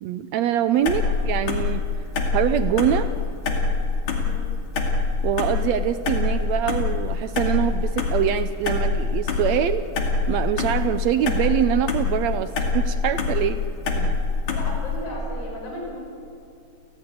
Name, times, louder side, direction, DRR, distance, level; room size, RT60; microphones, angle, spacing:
voice 1, 0.0-1.9 2.3-3.1 5.2-9.8 10.3-13.6 13.9-14.2, right 10 dB, 85° right, 11 dB, 1.5 m, -24 dB
sound 1, 0.8-15.0, left 4 dB, 85° left, 4.2 m, -25 dB
voice 2, 4.1-4.6 14.5-16.0, left 1 dB, 30° left, -2 dB, 7.2 m, -35 dB
29.5 x 16.5 x 9.6 m, 2.6 s
omnidirectional pair, 4.0 m